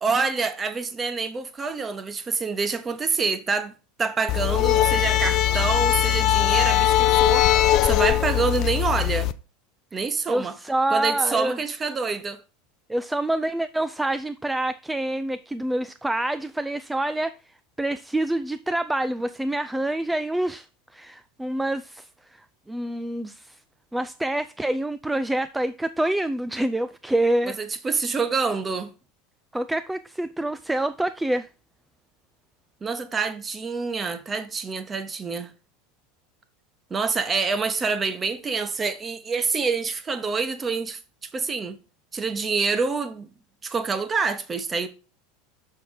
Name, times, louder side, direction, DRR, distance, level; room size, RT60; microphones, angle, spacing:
voice 1, 0.0-3.7 4.0-7.5 7.8-9.3 9.9-10.5 10.9-12.4 27.5-28.9 32.8-35.5 36.9-41.0 41.3-41.8 42.1-43.3 43.6-44.9, right 4 dB, 25° right, 1.1 m, -26 dB
sound 1, 4.3-9.3, left 12 dB, 50° left, 0.5 m, -20 dB
voice 2, 10.3-11.6 12.9-20.7 20.9-22.1 22.7-23.6 23.9-27.6 29.5-31.5, right 1 dB, 5° right, 0.4 m, -26 dB
6.3 x 5.9 x 4.7 m
hypercardioid pair, 80°, 0 cm